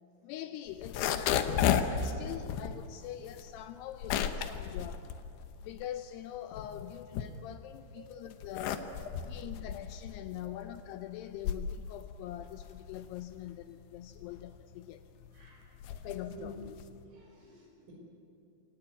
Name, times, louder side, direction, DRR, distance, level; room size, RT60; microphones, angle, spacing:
voice 1, 0.2-5.1 5.6-8.8 9.3-15.0 15.9-16.6, left 11 dB, 90° left, 2.3 m, -43 dB
sound 1, 0.7-6.0 6.4-7.8 8.3-17.0, left 8 dB, 70° left, 2.8 m, -34 dB
voice 2, 15.3-16.6 17.1-17.9, equal, 85° right, 8.4 m, -51 dB
28.5 x 18.0 x 9.6 m
omnidirectional pair, 5.6 m